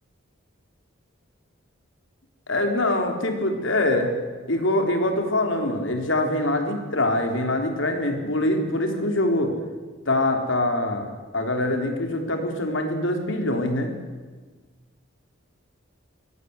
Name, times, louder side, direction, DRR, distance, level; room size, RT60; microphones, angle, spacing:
voice 1, 2.5-4.1 4.5-9.5 10.1-13.9, left 1 dB, 65° left, 4 dB, 3.6 m, -24 dB
23.0 x 16.5 x 8.1 m, 1.4 s
head